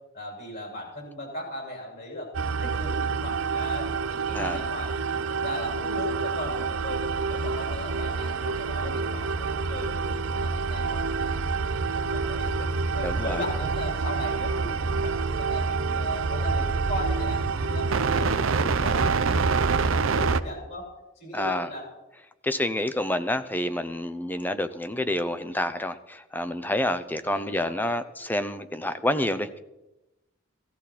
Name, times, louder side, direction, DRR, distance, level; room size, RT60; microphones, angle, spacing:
voice 1, 0.1-4.9 5.3-7.0 7.3-14.8 15.0-19.4 19.7-20.9 21.2-21.9 27.2-28.0, left 1 dB, 50° left, -1 dB, 6.9 m, -38 dB
sound 1, 2.3-20.4, right 4 dB, 70° right, 0.6 m, -27 dB
voice 2, 4.3-4.7 13.0-13.4 21.3-21.7 22.4-29.6, left 1 dB, 10° left, 11 dB, 0.6 m, -28 dB
17.0 x 14.5 x 4.2 m, 0.96 s
head